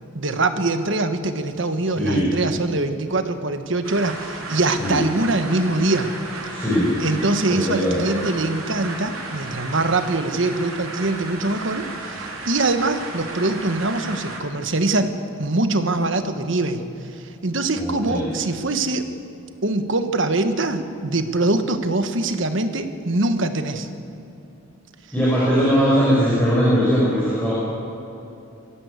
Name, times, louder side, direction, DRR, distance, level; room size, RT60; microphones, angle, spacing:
voice 1, 0.1-6.1 7.0-15.1 15.4-19.0 19.6-23.9, right 2 dB, 60° right, 8 dB, 1.3 m, -23 dB
voice 2, 2.0-2.3 4.8-5.0 6.5-7.0 7.5-8.0 17.8-18.3 25.1-27.5, equal, 5° left, -9 dB, 5.7 m, -20 dB
sound 1, 3.8-14.4, right 2 dB, 85° right, 3.8 m, -34 dB
22.0 x 16.0 x 8.2 m, 2.9 s
head